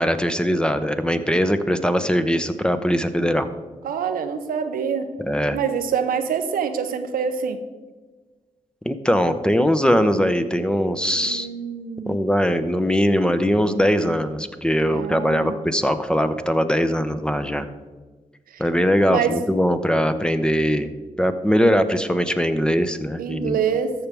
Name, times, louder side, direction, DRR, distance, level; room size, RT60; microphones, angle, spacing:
voice 1, 0.0-3.5 5.2-5.6 8.8-11.5 12.1-17.7 18.6-20.9 21.2-23.6, equal, 5° left, 9 dB, 0.8 m, -21 dB
voice 2, 3.8-5.1 5.5-7.6 11.2-12.2 14.9-15.5 19.1-19.4 23.2-23.9, right 7 dB, 85° right, 8 dB, 0.7 m, -25 dB
14.0 x 5.9 x 3.5 m, 1.3 s
cardioid pair, 50°, 14 cm